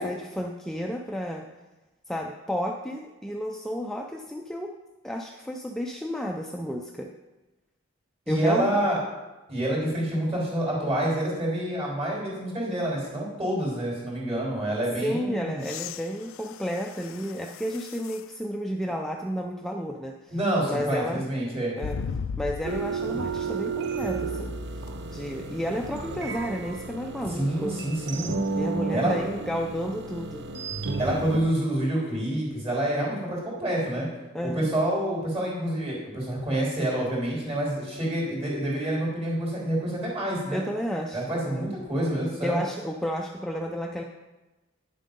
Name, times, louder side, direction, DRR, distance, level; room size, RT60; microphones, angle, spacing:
voice 1, 0.0-1.5 2.1-4.7 5.0-7.1 8.3-8.8 15.0-20.4 20.6-21.2 21.8-22.0 22.4-24.5 25.1-27.7 28.6-30.5 34.3-34.7 40.5-41.7 42.4-44.0, equal, ahead, 1 dB, 0.5 m, -32 dB
voice 2, 8.3-9.0 9.5-15.6 20.3-21.8 27.3-28.3 28.9-29.3 31.0-34.1 34.4-40.6 41.1-42.6, right 1 dB, 30° right, -4 dB, 3.6 m, -27 dB
sound 1, 15.6-18.3 19.0-19.1 21.8-23.0 24.9-25.0, left 6 dB, 80° left, 0.4 m, -37 dB
sound 2, 22.6-31.4, right 4 dB, 55° right, 0.7 m, -32 dB
9.4 x 7.5 x 5.3 m, 1.1 s
head